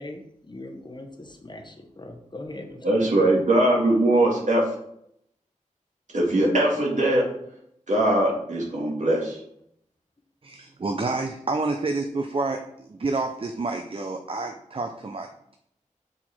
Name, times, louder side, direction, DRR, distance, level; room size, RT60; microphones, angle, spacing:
voice 1, 0.0-3.1, left 2 dB, 35° left, 3 dB, 1.0 m, -40 dB
voice 2, 2.8-4.7 6.1-7.3 7.9-9.4, right 1 dB, 65° right, -3 dB, 1.9 m, -21 dB
voice 3, 10.4-15.6, right 3 dB, 45° right, 5 dB, 0.6 m, -29 dB
6.3 x 4.5 x 4.3 m, 0.74 s
wide cardioid pair, 75°, 13 cm